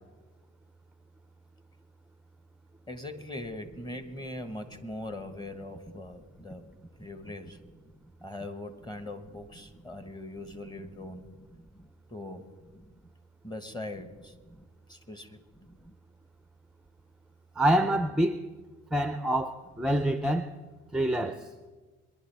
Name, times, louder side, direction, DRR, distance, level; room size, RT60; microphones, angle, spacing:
voice 1, 2.9-6.6 7.0-7.6 8.2-11.3 12.1-12.5 13.4-14.4 14.9-15.4, left 1 dB, 15° left, 1.3 m, -41 dB
voice 2, 17.6-18.5 18.9-20.5 20.9-21.5, right 1 dB, ahead, 0.5 m, -26 dB
22.5 x 11.0 x 3.4 m
cardioid pair, 90°, 30 cm